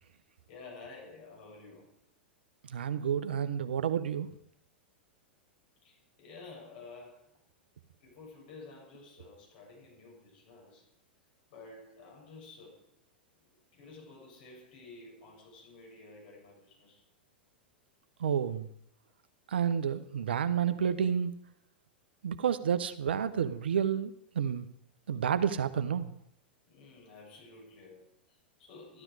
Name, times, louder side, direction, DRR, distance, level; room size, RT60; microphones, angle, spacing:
voice 1, 0.5-1.9 5.8-7.3 8.0-10.9 11.5-12.9 13.7-17.0 26.7-29.0, left 3 dB, 60° left, 0 dB, 6.6 m, -51 dB
voice 2, 2.7-4.3 18.2-18.7 19.5-21.3 22.2-24.6 25.1-26.2, right 8 dB, 75° right, 12 dB, 1.0 m, -30 dB
13.5 x 12.0 x 4.8 m, 0.71 s
hypercardioid pair, 100°, 6 cm